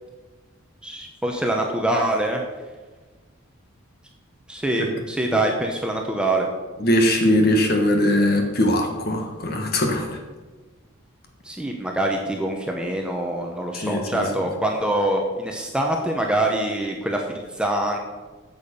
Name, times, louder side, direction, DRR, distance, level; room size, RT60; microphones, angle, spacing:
voice 1, 0.8-2.4 4.5-6.5 11.4-18.0, right 1 dB, 5° right, 1 dB, 0.8 m, -24 dB
voice 2, 6.8-10.2 13.7-14.2, left 1 dB, 45° left, 3 dB, 1.5 m, -21 dB
8.9 x 7.1 x 5.4 m, 1.3 s
head